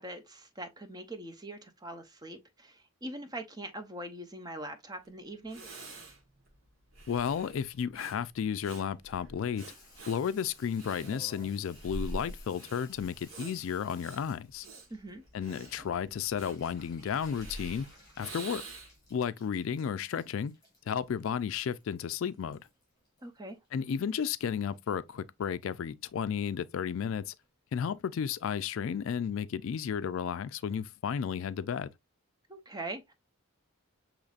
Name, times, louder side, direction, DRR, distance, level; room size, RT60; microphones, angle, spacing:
voice 1, 0.0-5.6 14.9-15.2 23.2-23.6 32.5-33.1, right 1 dB, 20° right, 0.6 m, -42 dB
Breathing, 5.0-5.1 5.5-19.1, right 1 dB, 65° right, 1.3 m, -46 dB
voice 2, 7.1-9.6 10.1-14.7 15.3-17.9 18.2-18.6 19.1-20.5 20.9-22.6 23.7-27.3 27.7-31.9, left 7 dB, 65° left, 0.3 m, -33 dB
Water tap faucet / Bathtub (filling or washing), 9.6-24.1 24.4-25.1 25.4-25.5 25.7-25.8 26.1-26.4 26.7-26.8 27.1-27.2 27.4-27.5 27.7-27.8 28.1-28.2 28.5-28.6 28.8-28.9 29.2-29.3, left 1 dB, 20° left, 3.0 m, -58 dB
6.5 x 3.1 x 2.4 m
head